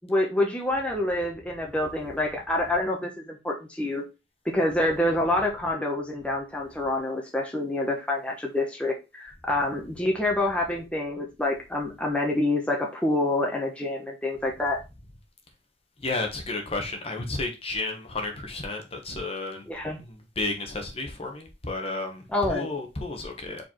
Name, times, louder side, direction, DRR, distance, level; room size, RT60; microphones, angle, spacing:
voice 1, 0.0-4.0 4.4-14.8 19.7-20.0 22.3-22.7, left 1 dB, 5° left, 1.1 m, -27 dB
voice 2, 16.0-19.7 20.0-23.6, left 2 dB, 30° left, 1.2 m, -32 dB
5.0 x 4.6 x 4.4 m
head